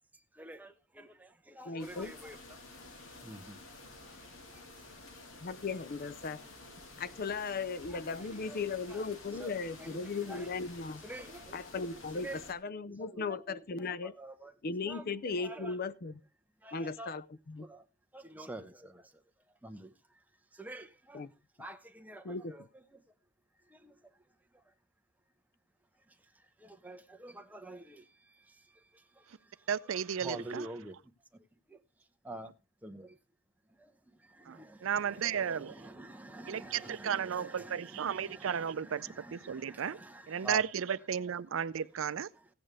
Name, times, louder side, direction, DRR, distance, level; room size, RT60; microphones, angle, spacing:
voice 1, 0.3-2.6 3.2-3.6 4.0-4.7 7.9-8.6 8.9-9.0 9.3-10.5 11.0-11.6 11.9-12.5 12.9-14.5 14.9-15.8 16.6-17.1 17.6-17.9 18.1-19.2 19.6-19.9 20.5-21.3 21.6-23.0 23.6-24.2 24.5-24.7 26.1-29.7 30.1-31.0 31.3-31.8 32.2-32.5 32.8-33.2 33.8-40.6 42.3-42.5, right 1 dB, 10° right, 0.9 m, -48 dB
voice 2, 1.7-2.1 5.4-6.4 7.0-11.0 11.5-14.1 14.6-16.2 16.7-17.7 21.1-21.3 22.2-22.6, left 4 dB, 45° left, 0.5 m, -37 dB
sound 1, 1.8-12.5, left 2 dB, 75° left, 2.1 m, -51 dB
voice 3, 29.7-30.7 34.5-35.7 36.5-40.0 40.3-42.3, right 7 dB, 75° right, 0.5 m, -34 dB
15.5 x 8.8 x 3.4 m
head